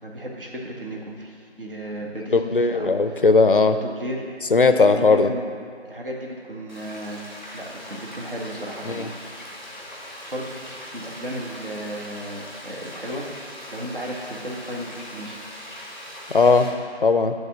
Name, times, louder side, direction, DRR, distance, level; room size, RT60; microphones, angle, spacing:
voice 1, 0.0-3.2 3.5-4.2 4.8-5.4 5.8-7.2 7.5-9.1 10.3-15.4, equal, 50° right, -2 dB, 1.5 m, -34 dB
voice 2, 2.3-3.8 4.5-5.3 8.9-9.1 16.3-16.7 17.0-17.3, left 4 dB, 55° left, 9 dB, 0.5 m, -17 dB
Frying (food), 6.7-16.7, equal, 10° left, 0.9 m, -40 dB
9.0 x 3.6 x 6.5 m, 2.4 s
figure-of-eight pair, 165°, 34 cm